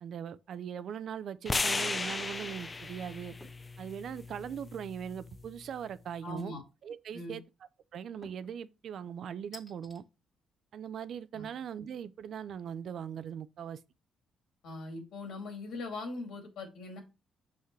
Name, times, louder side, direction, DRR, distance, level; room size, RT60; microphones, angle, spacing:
voice 1, 0.0-3.3 3.8-6.5 6.8-7.4 7.9-10.0 10.7-13.8, right 8 dB, 65° right, 0.5 m, -40 dB
sound 1, 1.5-5.7, left 3 dB, 25° left, 0.6 m, -36 dB
sound 2, 3.4-3.7 4.2-4.6 6.4-6.9 8.2-8.6 9.5-10.0, left 1 dB, 10° left, 2.1 m, -53 dB
voice 2, 6.2-6.6 7.1-7.4 11.3-11.4 14.6-17.0, left 2 dB, 80° left, 2.7 m, -41 dB
6.2 x 5.7 x 3.2 m
cardioid pair, 90°, 0 cm